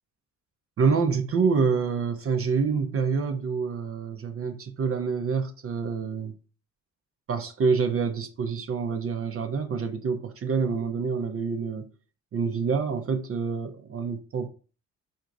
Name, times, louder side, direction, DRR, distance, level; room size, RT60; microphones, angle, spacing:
voice 1, 0.8-6.4 7.3-11.9 12.3-14.5, right 5 dB, 50° right, 0.7 m, -27 dB
4.4 x 2.6 x 4.6 m
cardioid pair, 90°, 30 cm